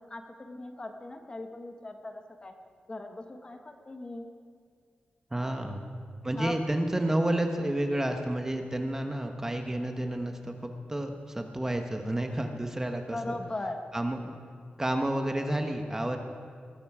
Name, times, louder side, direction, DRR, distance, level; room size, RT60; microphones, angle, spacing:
voice 1, 0.1-2.5 2.9-4.3 5.3-5.6 6.3-6.5 13.1-13.8 14.2-14.4, left 2 dB, 30° left, 5 dB, 1.2 m, -39 dB
voice 2, 5.3-5.8 6.2-13.3 13.9-14.2 14.8-16.2, right 1 dB, 15° right, 5 dB, 1.2 m, -30 dB
21.0 x 13.0 x 4.9 m, 2.1 s
wide cardioid pair, 145°, 3 cm